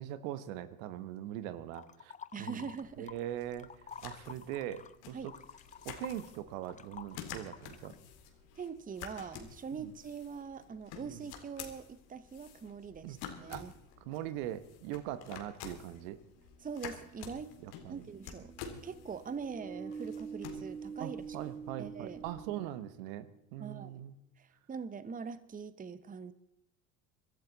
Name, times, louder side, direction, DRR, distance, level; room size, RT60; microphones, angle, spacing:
voice 1, 0.0-2.1 2.4-2.6 3.0-3.7 4.0-5.3 5.8-7.9 9.7-9.9 11.0-11.2 13.0-13.2 13.5-13.7 14.0-16.2 17.6-18.0 21.0-24.1, right 12 dB, 70° right, 13 dB, 1.2 m, -41 dB
sound 1, 1.7-3.2 3.5-8.0, left 6 dB, 20° left, 0.6 m, -50 dB
voice 2, 2.3-3.1 5.1-5.3 8.6-13.7 16.6-17.5 17.9-18.5 18.8-21.2 21.8-22.2 23.6-24.0 24.4-26.3, right 6 dB, 20° right, 14 dB, 0.9 m, -43 dB
sound 2, 2.8-22.4, left 7 dB, 65° left, 2.4 m, -50 dB
sound 3, 14.8-14.9 16.3-23.2, right 6 dB, 90° right, 5.8 m, -47 dB
23.0 x 13.0 x 4.0 m, 0.82 s
hypercardioid pair, 75°, 41 cm